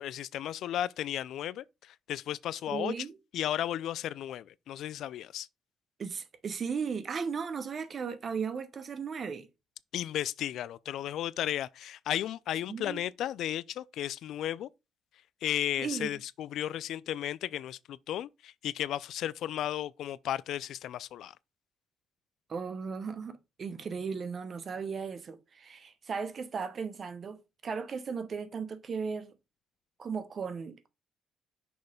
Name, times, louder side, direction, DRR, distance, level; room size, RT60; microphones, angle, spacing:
voice 1, 0.0-2.9 3.3-5.5 9.9-14.7 15.4-21.3, left 12 dB, 80° left, 0.3 m, -34 dB
voice 2, 2.7-3.2 6.0-9.5 12.7-13.0 15.8-16.2 22.5-29.3 30.0-30.9, right 5 dB, 45° right, 1.0 m, -36 dB
6.1 x 3.2 x 5.2 m
cardioid pair, 90°, 0 cm